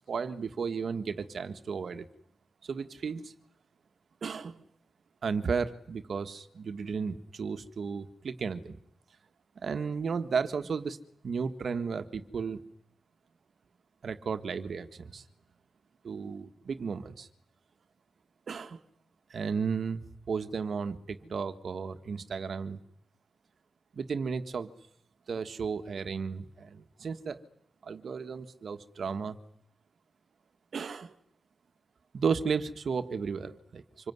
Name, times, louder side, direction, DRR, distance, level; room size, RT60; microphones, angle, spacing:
voice 1, 0.1-2.1 2.6-3.3 4.2-4.6 5.2-8.8 9.6-11.0 11.2-12.7 14.0-15.2 16.0-17.3 18.5-18.8 19.3-22.8 23.9-24.7 25.3-27.4 27.8-29.4 30.7-31.1 32.1-34.1, right 5 dB, 55° right, 9 dB, 1.5 m, -34 dB
26.5 x 22.5 x 9.6 m, 0.69 s
wide cardioid pair, 155°, 0 cm